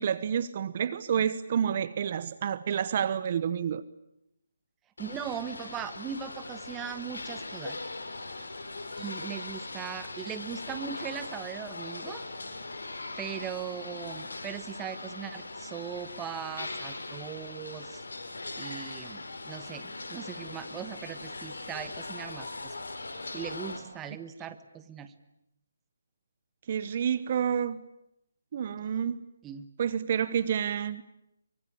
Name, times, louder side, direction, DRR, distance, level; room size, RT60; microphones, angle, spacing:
voice 1, 0.0-3.8 26.7-27.8 28.5-29.2 29.8-31.1, right 8 dB, 40° right, 16 dB, 1.1 m, -29 dB
sound 1, 5.0-23.8, left 2 dB, 85° left, 5.7 m, -40 dB
voice 2, 5.0-7.8 9.0-12.2 13.2-18.0 18.6-22.7 23.3-25.1 29.4-29.7, right 8 dB, 15° right, 11 dB, 1.4 m, -39 dB
24.0 x 24.0 x 8.8 m, 0.81 s
hypercardioid pair, 160°, 0 cm